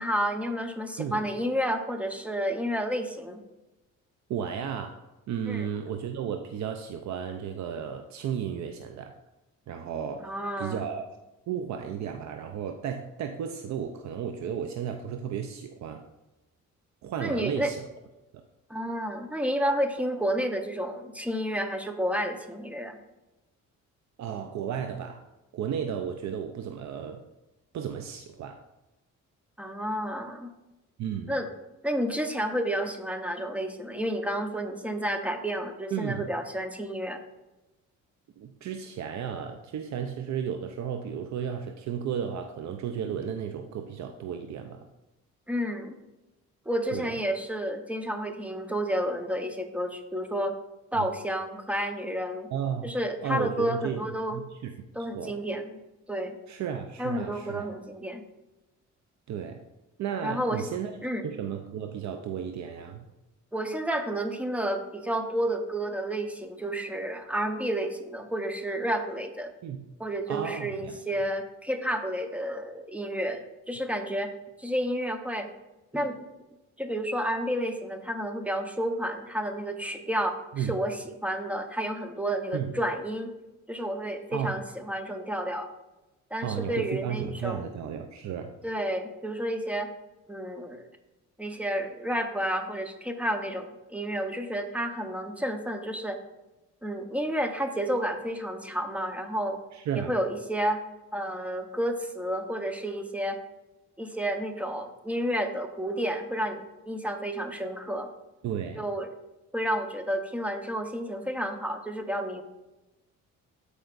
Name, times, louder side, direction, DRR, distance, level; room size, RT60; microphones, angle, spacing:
voice 1, 0.0-3.4 5.5-5.7 10.2-10.8 17.2-17.7 18.7-23.0 29.6-30.5 31.3-31.5 31.8-37.2 45.5-46.0 46.7-50.5 50.9-52.5 52.8-54.4 54.9-55.8 56.1-56.4 57.0-58.2 60.2-60.6 61.0-61.3 63.5-69.5 70.0-74.3 74.6-75.5 75.9-76.2 76.8-83.3 83.7-85.7 86.3-87.6 88.6-89.9 90.3-90.9 91.4-96.2 96.8-99.6 99.9-100.8 101.1-103.4 104.0-108.1 108.8-109.1 109.5-112.4, equal, 5° right, 6 dB, 0.9 m, -30 dB
voice 2, 4.3-4.9 5.3-9.2 9.7-10.3 10.6-11.0 11.5-16.0 17.0-17.8 24.2-25.2 25.5-27.2 27.7-28.6 31.0-31.4 35.9-36.2 38.4-44.9 46.9-47.2 51.0-51.1 52.5-52.9 53.2-54.0 54.3-54.7 55.1-55.4 56.5-57.7 59.3-59.6 60.0-60.9 61.2-63.1 69.6-69.8 70.3-71.2 80.5-80.7 82.5-82.7 84.3-84.5 86.4-88.6 99.7-100.1 108.4-108.8, right 8 dB, 65° right, 6 dB, 0.6 m, -33 dB
13.5 x 5.0 x 2.5 m, 1.0 s
cardioid pair, 90°, 30 cm